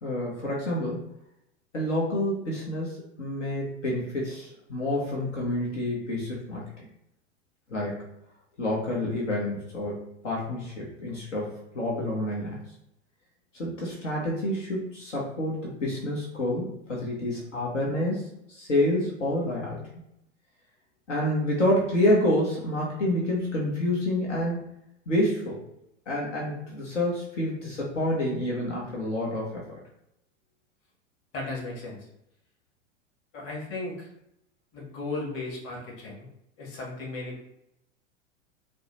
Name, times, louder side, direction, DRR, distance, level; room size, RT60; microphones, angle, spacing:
voice 1, 0.0-1.1 1.7-6.9 7.7-8.0 8.6-12.6 13.5-19.8 21.1-24.6 25.1-25.6 26.1-29.8, left 1 dB, 75° left, -4 dB, 1.1 m, -28 dB
voice 2, 31.3-32.1 33.3-34.1 34.7-36.3 36.6-37.4, left 2 dB, 40° left, -3 dB, 1.5 m, -35 dB
4.3 x 2.1 x 3.0 m, 0.81 s
figure-of-eight pair, 90°, 37 cm